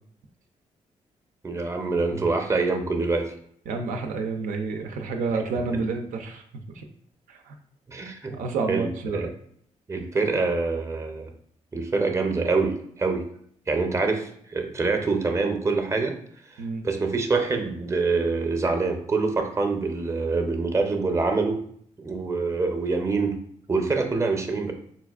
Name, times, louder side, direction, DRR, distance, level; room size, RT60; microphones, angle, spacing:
voice 1, 1.4-3.3 5.7-5.8 7.9-8.3 8.7-9.3 9.9-11.3 11.7-13.3 13.7-16.1 16.8-21.6 22.0-23.4 23.7-24.7, right 3 dB, 20° right, 5 dB, 0.6 m, -25 dB
voice 2, 3.7-6.8 7.3-7.6 8.3-9.3 16.6-16.8, right 4 dB, 85° right, 4 dB, 0.4 m, -29 dB
4.0 x 2.4 x 2.3 m, 0.65 s
cardioid pair, 65°, 13 cm